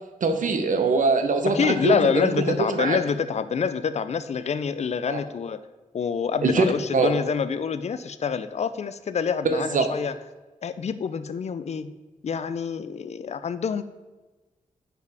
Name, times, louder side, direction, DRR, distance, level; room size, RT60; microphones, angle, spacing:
voice 1, 0.2-3.0 5.1-5.2 6.4-6.7 6.9-7.1 9.4-9.9, right 4 dB, 75° right, 7 dB, 0.7 m, -23 dB
voice 2, 1.5-5.6 5.9-10.1 10.6-11.9 12.2-13.8, left 6 dB, 55° left, 12 dB, 0.4 m, -26 dB
5.1 x 4.7 x 4.7 m, 1.2 s
wide cardioid pair, 90°, 14 cm